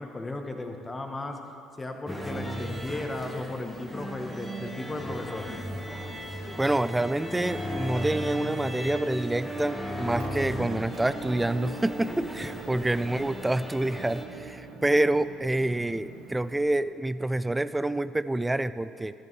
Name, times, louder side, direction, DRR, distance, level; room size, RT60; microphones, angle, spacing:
voice 1, 0.0-1.4 1.8-5.5 12.7-13.0, left 2 dB, 20° left, 4 dB, 1.1 m, -36 dB
sound 1, 2.1-14.3, equal, 5° left, 1.4 m, -36 dB
voice 2, 6.6-19.1, right 1 dB, 15° right, 15 dB, 0.3 m, -27 dB
Motor vehicle (road) / Engine, 10.2-16.6, right 4 dB, 75° right, 0.9 m, -43 dB
12.5 x 7.7 x 3.2 m, 2.7 s
hypercardioid pair, 60°, 0 cm